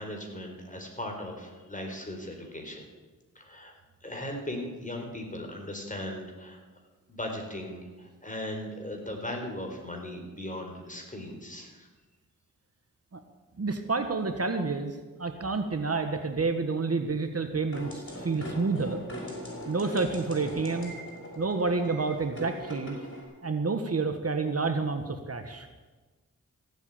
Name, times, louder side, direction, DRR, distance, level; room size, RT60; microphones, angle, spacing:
voice 1, 0.0-2.9 3.3-3.7 4.0-6.6 7.1-11.9, left 1 dB, 25° left, 2 dB, 4.4 m, -38 dB
voice 2, 13.6-19.0 19.7-20.9 21.4-23.0 23.4-25.7, right 4 dB, 50° right, 7 dB, 1.4 m, -29 dB
sound 1, 17.7-23.2, left 1 dB, 40° left, 6.6 m, -41 dB
16.0 x 8.2 x 8.9 m, 1.3 s
cardioid pair, 55°, 32 cm